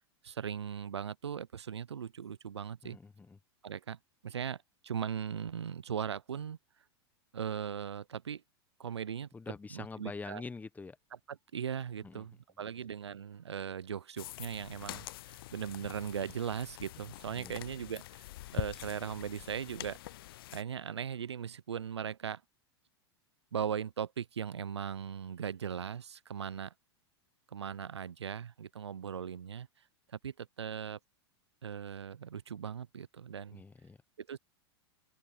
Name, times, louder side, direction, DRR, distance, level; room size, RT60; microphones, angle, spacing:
voice 1, 0.2-3.0 3.6-6.6 7.3-8.4 8.8-9.3 9.7-10.4 11.3-18.2 18.5-20.0 20.5-22.4 23.5-26.7 27.5-29.7 30.1-31.0 31.6-33.6 34.2-34.4, right 8 dB, 80° right, 0.8 m, -39 dB
voice 2, 2.8-3.4 9.3-11.0 12.0-12.2 17.3-17.6 33.5-34.0, left 4 dB, 10° left, 1.4 m, -45 dB
sound 1, 14.2-20.6, left 16 dB, 60° left, 0.5 m, -44 dB
open air
figure-of-eight pair, 95°, 14 cm